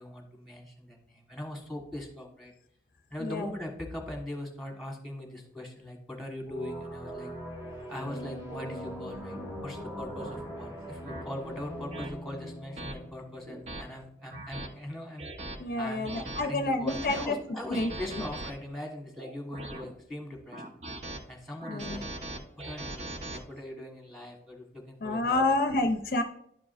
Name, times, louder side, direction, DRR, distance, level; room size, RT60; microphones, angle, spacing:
voice 1, 0.0-2.5 3.1-7.3 7.9-9.4 9.6-15.3 15.8-20.8 21.3-22.1 22.6-25.4, left 1 dB, ahead, 0 dB, 1.4 m, -41 dB
sound 1, 6.5-13.8, equal, 15° right, 1.5 m, -41 dB
sound 2, 9.4-9.5 10.2-10.4 11.1-11.2 11.9-12.1 12.8-12.9 13.5-13.8 14.3-14.7 15.2-15.6 16.0-16.4 16.9-17.3 17.7-18.5 19.2-19.9 20.5-21.2 21.6-23.4, right 1 dB, 40° right, 0.9 m, -40 dB
voice 2, 15.6-17.4 17.7-17.9 21.7-22.0 25.0-26.2, left 2 dB, 50° left, 6 dB, 0.5 m, -28 dB
11.5 x 4.8 x 2.5 m, 0.72 s
head